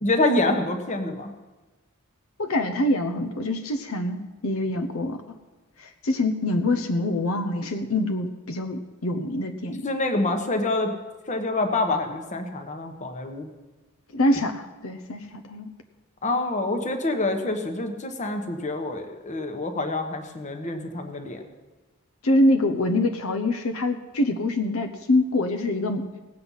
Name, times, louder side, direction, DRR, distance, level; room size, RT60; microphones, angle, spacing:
voice 1, 0.0-1.3 9.8-11.0 11.3-13.5 16.2-21.4, left 2 dB, 35° left, 5 dB, 1.2 m, -26 dB
voice 2, 2.4-5.2 5.8-9.8 14.1-15.7 22.2-26.1, left 1 dB, 75° left, 7 dB, 0.9 m, -25 dB
18.0 x 7.7 x 5.6 m, 1.2 s
head